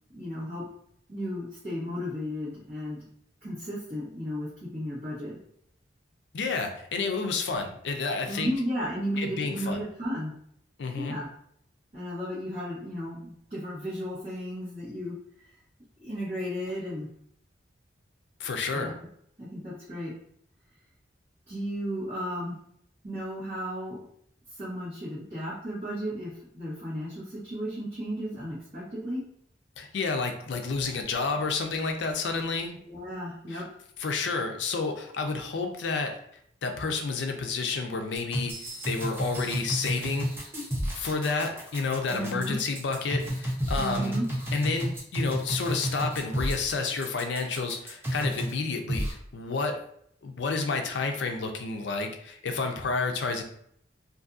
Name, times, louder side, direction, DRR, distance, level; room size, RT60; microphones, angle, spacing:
voice 1, 0.1-0.7 1.1-3.0 3.4-5.4 8.3-10.3 10.9-11.3 11.9-15.2 16.0-17.1 18.7-18.9 19.4-20.1 21.5-22.5 23.0-24.0 24.5-29.2 32.8-33.8 42.1-42.6 43.8-44.2, equal, 40° right, -12 dB, 1.1 m, -34 dB
voice 2, 6.3-8.5 9.2-9.8 10.8-11.1 18.4-18.9 29.8-32.7 33.5-33.6 34.0-36.2 36.6-38.5 38.9-40.3 40.9-44.1 44.5-49.8 50.2-53.4, left 4 dB, 70° left, 5 dB, 0.4 m, -30 dB
sound 1, 38.2-48.6 48.9-49.1, equal, 10° right, 0.5 m, -31 dB
2.6 x 2.5 x 2.4 m, 0.68 s
head